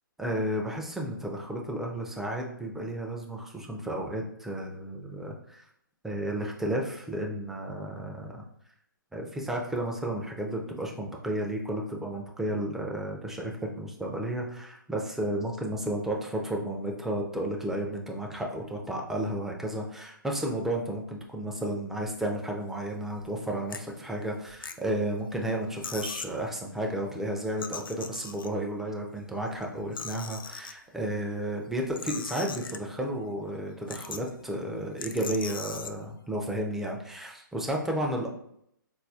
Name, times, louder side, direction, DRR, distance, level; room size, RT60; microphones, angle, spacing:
voice 1, 0.2-5.7 6.0-8.4 9.1-38.3, right 1 dB, 5° right, 0 dB, 0.3 m, -32 dB
sound 1, 23.1-23.3 23.7-23.8 24.4-25.1 25.5-25.6 25.8-26.4 27.4-28.7 29.4-30.7 31.7-33.1 33.5-33.6 33.9-34.4 35.0-35.9, left 5 dB, 75° left, 0.4 m, -39 dB
4.0 x 2.4 x 2.6 m, 0.73 s
figure-of-eight pair, 130°, 11 cm